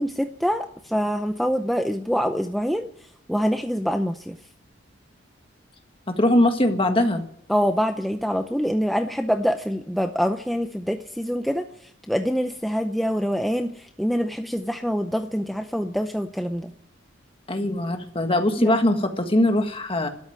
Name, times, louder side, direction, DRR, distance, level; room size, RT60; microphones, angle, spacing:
voice 1, 0.0-2.9 3.3-4.4 7.5-11.7 12.1-16.7 18.6-18.7, equal, ahead, 6 dB, 0.6 m, -25 dB
voice 2, 6.1-7.2 17.5-20.1, left 1 dB, 30° left, 6 dB, 1.6 m, -21 dB
13.0 x 11.5 x 9.3 m, 0.72 s
head